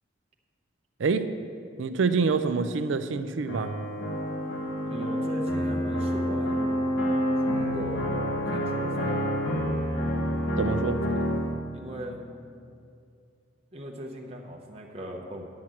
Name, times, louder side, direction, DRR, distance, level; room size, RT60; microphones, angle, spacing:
voice 1, 1.8-3.7 10.6-11.0, right 4 dB, 70° right, 11 dB, 0.5 m, -26 dB
sound 1, 3.5-11.5, equal, 80° left, 1.7 m, -28 dB
voice 2, 4.8-6.7 7.4-9.2 11.7-12.2 13.7-15.4, right 1 dB, 30° right, 0 dB, 0.9 m, -38 dB
9.6 x 5.8 x 7.6 m, 2.4 s
head